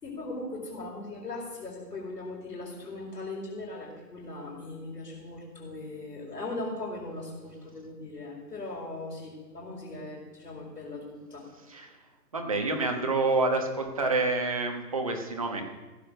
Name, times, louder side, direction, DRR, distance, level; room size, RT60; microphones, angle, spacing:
voice 1, 0.0-11.5, left 2 dB, 65° left, -5 dB, 5.0 m, -39 dB
voice 2, 11.7-12.0 12.3-15.6, right 3 dB, 20° right, 3 dB, 1.2 m, -28 dB
15.5 x 8.7 x 6.4 m, 1.2 s
hypercardioid pair, 165°, 49 cm